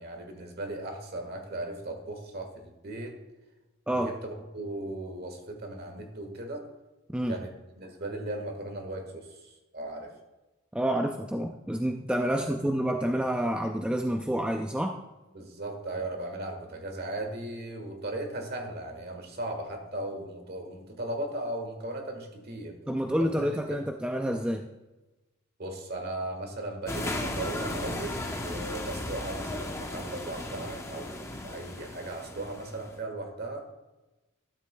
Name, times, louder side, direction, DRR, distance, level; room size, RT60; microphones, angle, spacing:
voice 1, 0.0-3.2 3.9-6.6 7.3-10.1 12.2-12.5 15.3-22.7 23.4-23.8 25.6-33.6, right 1 dB, 50° right, 4 dB, 1.5 m, -37 dB
voice 2, 10.7-15.0 22.9-24.7, equal, 5° right, 3 dB, 0.3 m, -28 dB
sound 1, 26.9-33.0, left 1 dB, 15° left, 0.7 m, -36 dB
12.0 x 7.6 x 2.2 m, 1.1 s
head